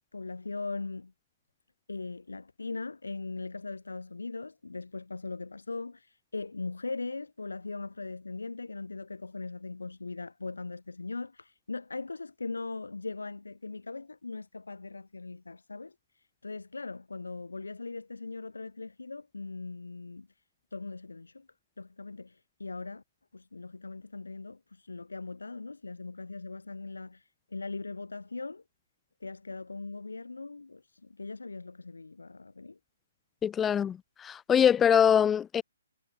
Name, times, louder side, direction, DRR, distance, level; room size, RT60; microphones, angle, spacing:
voice 1, 0.1-1.1 1.9-20.3 20.7-21.5 21.8-23.0 23.3-28.6 29.2-32.8, left 3 dB, 90° left, 3.1 m, -40 dB
voice 2, 33.4-35.6, left 8 dB, 15° left, 0.4 m, -24 dB
hypercardioid pair, 145°, 0 cm